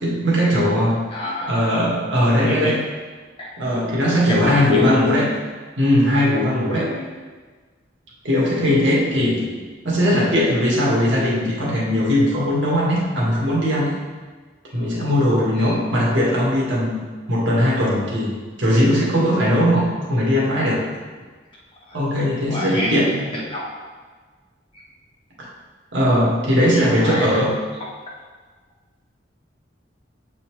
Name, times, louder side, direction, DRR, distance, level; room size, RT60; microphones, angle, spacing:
voice 1, 0.0-1.0 1.4-2.8 3.6-5.3 5.8-7.0 8.2-9.4 9.8-14.0 14.7-17.0 17.3-20.8 21.9-23.1 25.4-25.5 25.9-27.5, equal, 90° right, -5 dB, 1.8 m, -19 dB
voice 2, 1.1-1.5 2.4-2.8 3.4-3.5 4.3-5.0 6.9-7.0 9.1-9.5 15.6-15.8 22.5-23.8 24.7-24.8 26.7-27.4, left 1 dB, 30° left, -5 dB, 1.0 m, -28 dB
7.8 x 4.2 x 3.2 m, 1.4 s
head